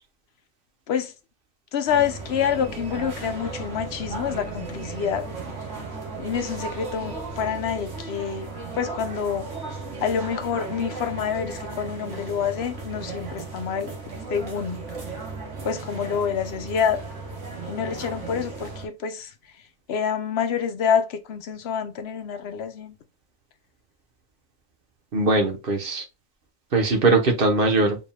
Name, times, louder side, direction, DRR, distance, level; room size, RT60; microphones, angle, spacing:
voice 1, 1.7-5.3 6.2-8.5 8.8-9.5 10.0-13.9 14.3-14.8 15.6-17.1 17.7-19.3 19.9-22.9, left 7 dB, 60° left, 0.8 m, -27 dB
sound 1, 1.9-18.9, right 3 dB, 60° right, 1.8 m, -35 dB
voice 2, 25.1-26.0 26.7-28.0, right 3 dB, 45° right, 1.1 m, -20 dB
4.9 x 3.5 x 2.2 m
omnidirectional pair, 1.4 m